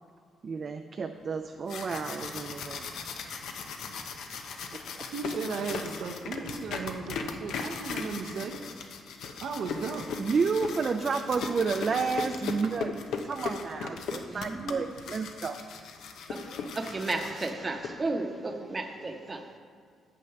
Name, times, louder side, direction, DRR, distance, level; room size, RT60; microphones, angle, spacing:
voice 1, 0.4-2.9 4.7-5.1 10.2-12.9 13.2-15.6, right 5 dB, 45° right, 6 dB, 0.4 m, -31 dB
sound 1, 1.4-17.9, left 5 dB, 75° left, 0.7 m, -38 dB
voice 2, 5.1-8.6 9.4-10.1, right 4 dB, 75° right, 4 dB, 0.8 m, -35 dB
voice 3, 14.3-14.8 16.3-16.4 16.7-19.6, right 2 dB, 25° right, 5 dB, 0.9 m, -33 dB
7.7 x 6.4 x 5.8 m, 2.1 s
cardioid pair, 90°, 0 cm